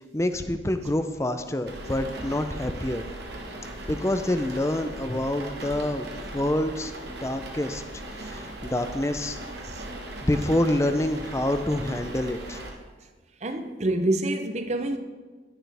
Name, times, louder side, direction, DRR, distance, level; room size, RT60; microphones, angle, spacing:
voice 1, 0.1-3.1 3.9-7.8 8.2-9.4 10.2-12.6, left 1 dB, 15° left, 0.5 m, -27 dB
sound 1, 1.7-12.7, right 1 dB, 60° right, 1.4 m, -38 dB
voice 2, 13.4-15.0, right 1 dB, 35° right, 0.7 m, -27 dB
11.0 x 10.5 x 3.4 m
head